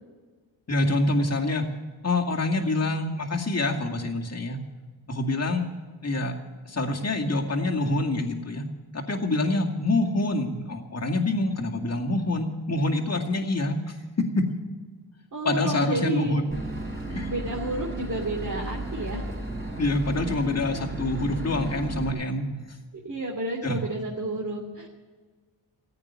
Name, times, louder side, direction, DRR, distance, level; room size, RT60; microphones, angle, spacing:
voice 1, 0.7-1.7 2.0-4.6 5.1-5.6 6.0-6.4 6.7-8.7 8.9-14.0 14.3-14.4 15.4-16.5 17.1-17.3 19.8-22.5 23.6-23.8, left 2 dB, 30° left, 2 dB, 2.2 m, -26 dB
voice 2, 15.3-16.3 17.2-19.3 22.1-22.2 23.0-24.9, right 2 dB, 40° right, -3 dB, 2.6 m, -31 dB
Boat Water vehicle / Engine, 16.5-22.1, right 1 dB, 20° right, 4.0 m, -34 dB
15.0 x 8.9 x 9.5 m, 1.4 s
cardioid pair, 75°, 48 cm